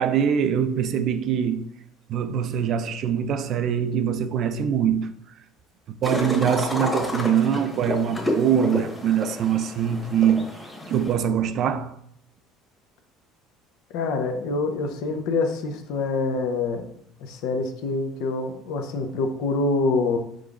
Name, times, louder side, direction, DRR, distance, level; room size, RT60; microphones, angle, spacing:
voice 1, 0.0-1.7 2.1-5.1 5.9-10.5 10.9-11.9, right 8 dB, 55° right, 0.3 m, -23 dB
sound 1, 6.0-11.1, left 1 dB, 10° left, 1.3 m, -30 dB
voice 2, 13.9-16.9 17.2-20.2, left 3 dB, 75° left, 0.6 m, -25 dB
4.9 x 3.8 x 2.4 m
supercardioid pair, 90°, 0 cm